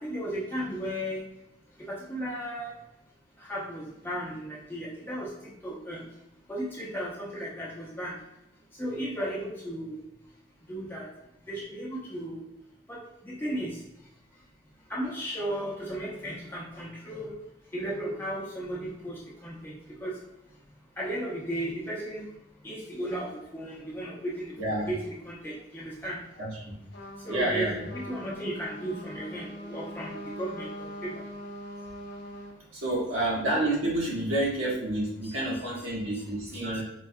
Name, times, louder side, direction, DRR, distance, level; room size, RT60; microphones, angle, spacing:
voice 1, 0.0-1.2 1.9-2.7 3.4-6.1 6.5-8.2 8.8-10.0 10.7-11.1 11.5-12.4 12.9-13.8 14.9-17.3 17.7-20.2 21.0-22.2 22.6-26.2 27.2-31.2 35.2-35.3 36.1-36.2 36.5-36.8, right 1 dB, 10° left, -6 dB, 0.7 m, -35 dB
voice 2, 24.6-24.9 26.4-26.7 27.3-27.9 32.7-36.8, right 1 dB, 85° right, -5 dB, 1.4 m, -29 dB
Trumpet, 26.9-32.6, equal, 55° left, 0.6 m, -42 dB
4.5 x 2.6 x 2.2 m, 0.87 s
head